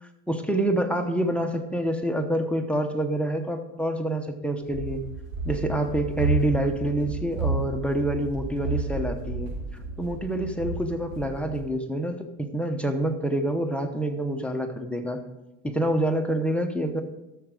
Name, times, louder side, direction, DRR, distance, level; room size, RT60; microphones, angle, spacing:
voice 1, 0.0-5.0 5.4-9.5 10.0-15.2 15.6-17.0, right 1 dB, 5° left, 5 dB, 0.9 m, -27 dB
Run, 4.6-11.7, right 3 dB, 75° right, 4.8 m, -31 dB
13.0 x 7.2 x 5.0 m, 0.97 s
cardioid pair, 125°, 34 cm